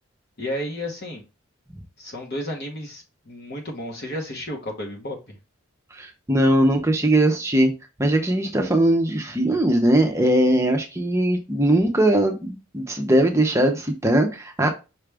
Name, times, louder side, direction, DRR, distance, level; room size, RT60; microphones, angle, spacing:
voice 1, 0.4-1.2 2.0-5.4, left 1 dB, 50° left, 1.0 m, -32 dB
voice 2, 5.9-7.7 8.0-14.7, right 1 dB, 15° right, 0.6 m, -20 dB
5.9 x 2.4 x 3.3 m
head